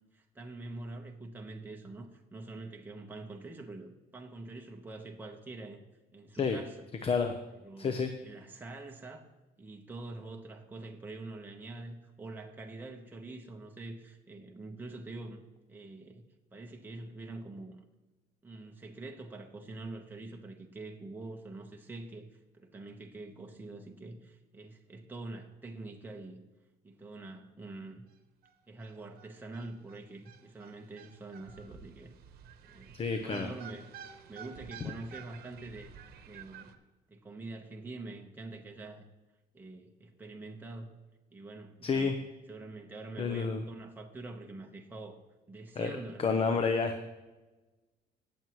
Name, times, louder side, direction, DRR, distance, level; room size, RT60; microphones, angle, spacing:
voice 1, 0.1-5.8 6.1-6.8 7.6-9.3 9.6-15.4 15.7-17.8 18.4-26.4 26.8-28.0 28.7-32.1 32.6-33.9 34.3-35.9 36.3-36.7 37.1-39.0 39.5-41.0 41.3-42.2 42.5-45.2 45.5-46.6, right 2 dB, 10° right, 1 dB, 1.1 m, -45 dB
voice 2, 7.0-7.4 7.8-8.1 32.9-33.5 41.8-42.2 43.2-43.6 45.8-46.9, left 5 dB, 35° left, 7 dB, 0.8 m, -29 dB
sound 1, 28.1-28.2 28.4-28.5 28.8-36.8, right 8 dB, 65° right, 1.1 m, -51 dB
18.5 x 7.3 x 3.1 m, 1.1 s
cardioid pair, 110°, 17 cm